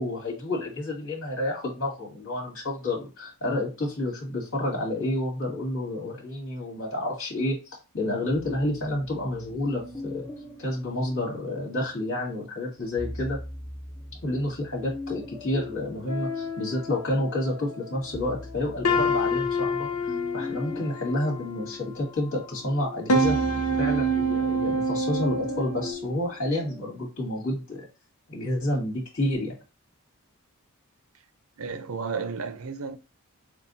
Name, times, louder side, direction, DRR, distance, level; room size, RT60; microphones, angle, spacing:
voice 1, 0.0-7.6 7.9-10.3 10.6-13.4 14.2-19.9 20.3-23.4 23.8-27.9 28.3-29.5, left 1 dB, 60° left, 2.4 m, -29 dB
sound 1, 8.3-11.8 12.8-17.2 17.6-26.9, left 1 dB, 20° left, 0.7 m, -41 dB
sound 2, 16.1-17.9 18.4-18.5 18.8-22.1 22.7-25.9, right 1 dB, 85° left, 0.8 m, -27 dB
voice 2, 31.6-33.0, right 5 dB, 70° right, 0.6 m, -32 dB
6.9 x 2.4 x 2.7 m
head